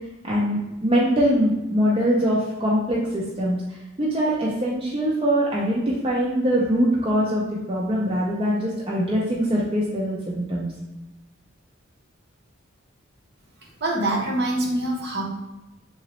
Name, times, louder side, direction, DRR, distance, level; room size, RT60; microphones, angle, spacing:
voice 1, 0.2-3.6 4.0-10.7, equal, 25° right, -5 dB, 0.5 m, -23 dB
voice 2, 13.6-15.2, right 1 dB, 50° right, -2 dB, 0.9 m, -25 dB
3.9 x 2.9 x 3.0 m, 1.0 s
head